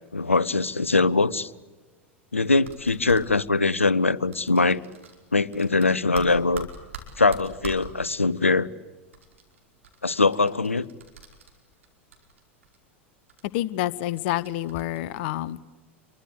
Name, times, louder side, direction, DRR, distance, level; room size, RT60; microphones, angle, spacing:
voice 1, 0.1-1.5 2.3-4.8 5.3-6.7 7.2-8.7 10.0-10.9, left 3 dB, 90° left, 0.8 m, -22 dB
sound 1, 2.5-3.2 4.3-5.2 5.5-7.9 9.1-11.9 12.1-12.8 13.3-13.4 14.1-15.0, right 5 dB, 75° right, 4.9 m, -42 dB
voice 2, 13.5-15.6, left 14 dB, 55° left, 0.9 m, -28 dB
28.5 x 23.0 x 8.2 m
figure-of-eight pair, 85°, 7 cm